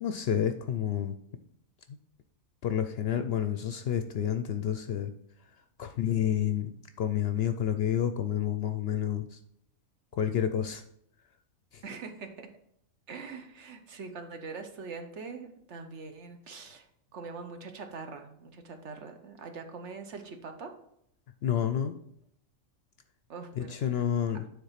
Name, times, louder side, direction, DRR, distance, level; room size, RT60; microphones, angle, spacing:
voice 1, 0.0-1.2 1.9-2.0 2.6-5.1 5.8-9.4 10.1-10.8 11.7-11.8 21.4-22.0 23.6-24.4, left 9 dB, 60° left, 9 dB, 0.7 m, -29 dB
voice 2, 11.8-12.5 13.1-20.7 23.3-23.7, right 4 dB, 60° right, 5 dB, 1.2 m, -43 dB
9.4 x 3.7 x 5.7 m, 0.72 s
omnidirectional pair, 1.4 m